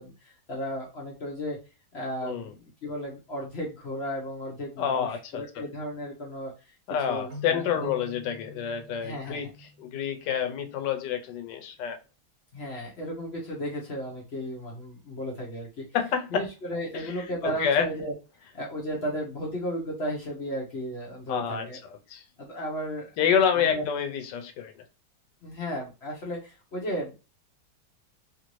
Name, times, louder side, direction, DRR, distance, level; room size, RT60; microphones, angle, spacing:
voice 1, 0.0-1.6 1.9-2.6 2.8-6.7 7.0-7.9 9.0-9.5 12.5-15.8 16.3-18.1 18.5-21.8 22.4-23.1 23.5-23.8 25.4-27.1, equal, 50° left, 0.8 m, -34 dB
voice 2, 4.8-5.6 6.9-9.5 9.8-12.0 15.9-16.5 17.0-17.1 17.4-17.9 21.3-22.2 23.2-24.7, left 7 dB, 85° left, 1.2 m, -28 dB
sound 1, 7.3-10.8, left 1 dB, 60° right, 1.0 m, -47 dB
2.9 x 2.5 x 3.0 m
omnidirectional pair, 1.8 m